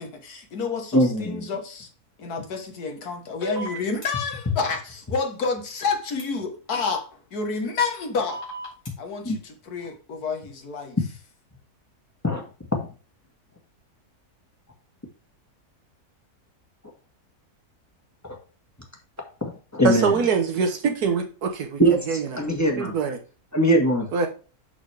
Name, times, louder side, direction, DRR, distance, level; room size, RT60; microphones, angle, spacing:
voice 1, 0.0-1.9 2.2-8.5 9.0-11.0, left 4 dB, 75° left, 1.8 m, -29 dB
voice 2, 0.9-1.4 9.2-9.4 12.2-12.4 19.4-20.1 21.8-22.0 22.4-22.9 23.5-24.1, right 1 dB, 10° left, 1.5 m, -21 dB
sound 1, 3.4-4.1 6.2-6.3 8.3-8.9, right 1 dB, 50° left, 4.0 m, -33 dB
voice 3, 19.8-22.4 22.8-23.2 24.1-24.3, right 6 dB, 75° right, 1.6 m, -24 dB
11.5 x 4.1 x 3.4 m
omnidirectional pair, 1.6 m